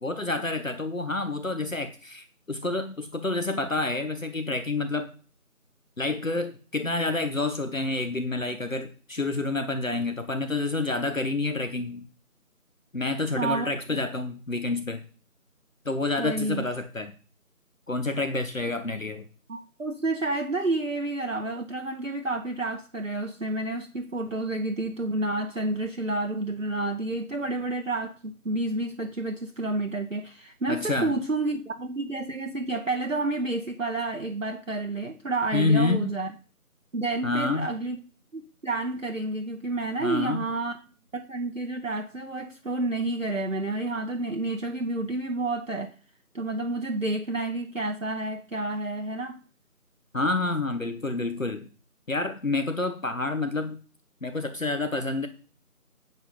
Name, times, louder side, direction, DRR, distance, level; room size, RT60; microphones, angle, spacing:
voice 1, 0.0-5.1 6.0-12.1 12.9-15.0 15.8-17.1 17.9-19.2 30.7-31.1 35.5-36.1 37.2-37.7 40.0-40.4 50.1-51.7 52.1-53.8 54.2-55.3, left 2 dB, 60° left, 1.1 m, -28 dB
voice 2, 13.4-13.7 16.2-16.6 19.5-36.3 36.9-38.0 38.3-40.7 41.1-45.9 46.3-49.4, right 2 dB, 60° right, 0.9 m, -30 dB
7.8 x 7.5 x 5.4 m
figure-of-eight pair, 175°, 44 cm